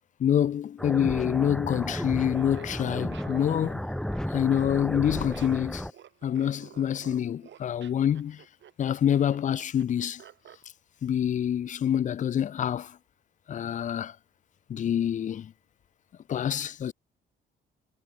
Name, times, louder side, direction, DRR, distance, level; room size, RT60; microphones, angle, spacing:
voice 1, 0.2-3.8 4.3-5.9 6.2-8.4 8.8-10.2 11.0-12.9 13.5-14.1 14.7-15.5 16.3-16.9, left 9 dB, 40° left, 0.4 m, -26 dB
sound 1, 0.8-5.9, equal, 5° left, 2.2 m, -33 dB
Laughter, 2.3-10.6, right 10 dB, 65° right, 5.3 m, -51 dB
cardioid pair, 90°, 20 cm